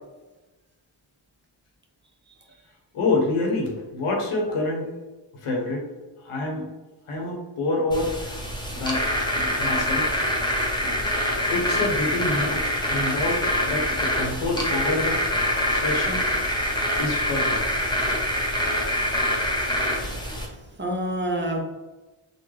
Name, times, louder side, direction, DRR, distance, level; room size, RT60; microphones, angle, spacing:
voice 1, 2.9-4.9 5.4-5.9 6.2-6.6 7.1-10.1 10.8-11.0 11.4-15.4 15.7-16.3 17.0-17.6, left 2 dB, 85° left, 0 dB, 1.0 m, -27 dB
sound 1, 7.9-20.5, left 1 dB, 10° left, 0.9 m, -25 dB
voice 2, 20.3-21.6, right 1 dB, 25° right, 1 dB, 0.7 m, -28 dB
3.7 x 2.2 x 3.1 m, 1.1 s
cardioid pair, 50°, 49 cm